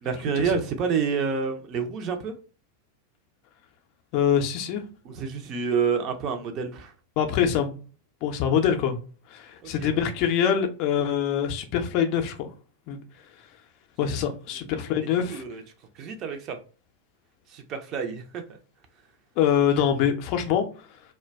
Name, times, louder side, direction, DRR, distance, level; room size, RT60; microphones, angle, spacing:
voice 1, 0.0-2.3 5.0-6.9 9.6-10.0 15.3-15.6 15.9-16.6 17.5-18.4, right 6 dB, 35° right, 0.4 m, -28 dB
voice 2, 4.1-4.8 7.2-7.8 8.2-9.0 9.3-12.5 12.9-13.0 13.4-13.5 14.0-15.4 19.4-21.0, left 8 dB, 45° left, 0.4 m, -24 dB
2.2 x 2.1 x 3.2 m
figure-of-eight pair, 90°, 0 cm